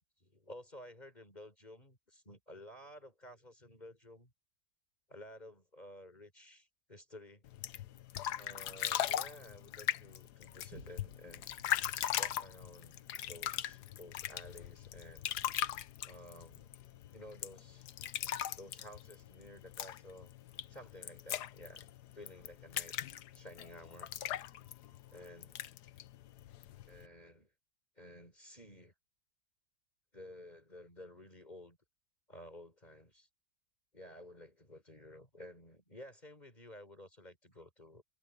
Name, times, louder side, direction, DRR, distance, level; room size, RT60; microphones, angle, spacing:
voice 1, 0.2-4.3 5.1-7.4 8.4-11.5 12.2-15.3 16.0-16.7 17.1-17.9 18.6-20.3 20.7-21.9 22.1-23.0 23.3-24.1 25.1-25.6 26.9-27.5 28.0-28.9 30.1-31.8 32.3-33.3 33.9-38.0, left 1 dB, 25° left, 4.4 m, -53 dB
sound 1, 7.5-27.1, left 11 dB, 75° left, 1.3 m, -40 dB
Boom, 10.7-17.6 18.1-18.2, right 2 dB, 60° right, 7.3 m, -63 dB
omnidirectional pair, 1.8 m